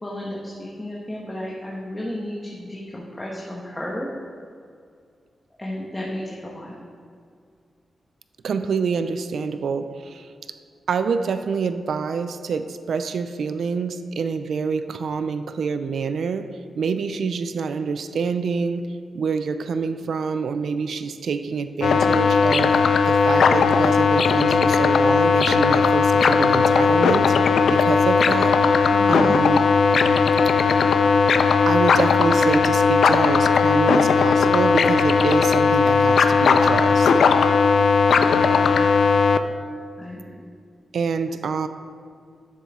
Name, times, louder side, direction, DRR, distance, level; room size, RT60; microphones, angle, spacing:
voice 1, 0.0-4.1 5.6-6.8 28.9-29.3 38.3-38.8 40.0-40.4, left 1 dB, 20° left, -4 dB, 1.2 m, -33 dB
voice 2, 8.4-10.3 10.9-16.5 16.8-18.9 19.1-22.7 23.1-30.2 31.7-37.1 40.9-41.7, right 5 dB, 75° right, 10 dB, 0.4 m, -26 dB
sound 1, 21.8-39.4, left 5 dB, 80° left, 0.4 m, -17 dB
11.5 x 7.1 x 3.6 m, 2.3 s
cardioid pair, 85°, 0 cm